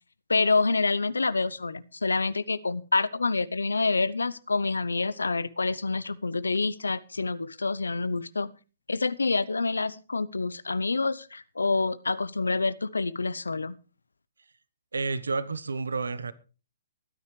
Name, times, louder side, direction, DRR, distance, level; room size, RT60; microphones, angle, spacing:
voice 1, 0.3-8.5 8.9-13.8, left 3 dB, 85° left, 0.8 m, -27 dB
voice 2, 14.9-16.3, right 4 dB, 80° right, 1.0 m, -30 dB
23.5 x 9.7 x 3.3 m
figure-of-eight pair, 130°, 0 cm